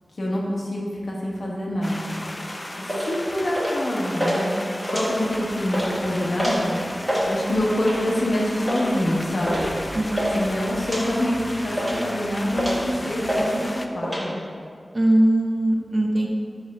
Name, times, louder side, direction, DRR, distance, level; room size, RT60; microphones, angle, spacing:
voice 1, 0.2-2.2 3.1-4.5 4.8-6.8 7.3-9.7 10.3-11.4 11.6-13.6 13.9-14.4, left 1 dB, 70° left, -3 dB, 1.0 m, -26 dB
sound 1, 1.8-13.9, left 1 dB, 25° left, 0.4 m, -35 dB
sound 2, 2.9-3.1 3.5-3.8 4.2-4.4 4.8-5.4 5.7-5.9 6.4-6.6 6.9-7.3 7.8-8.1 8.7-8.9 9.5-9.6 9.9-10.3 10.8-11.0 11.5-12.1 12.5-12.9 13.3-13.5 13.7-14.2, equal, 10° right, 1.5 m, -26 dB
sound 3, 5.2-13.3, equal, 75° right, 1.3 m, -42 dB
voice 2, 9.9-10.5 14.9-16.3, right 1 dB, 45° right, 0 dB, 0.6 m, -21 dB
5.3 x 3.5 x 5.4 m, 2.2 s
wide cardioid pair, 85°, 0 cm